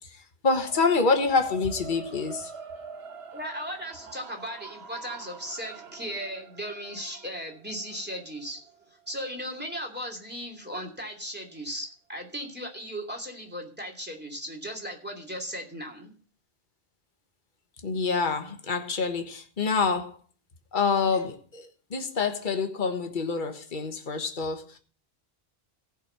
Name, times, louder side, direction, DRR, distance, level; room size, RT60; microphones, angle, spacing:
voice 1, 0.1-2.5 17.8-20.2 20.7-24.8, left 4 dB, 50° left, 1.5 m, -27 dB
sound 1, 0.6-10.8, right 5 dB, 80° right, 1.3 m, -46 dB
voice 2, 3.3-8.6 9.1-16.1, equal, 10° right, 2.7 m, -37 dB
16.0 x 5.4 x 6.7 m
omnidirectional pair, 1.1 m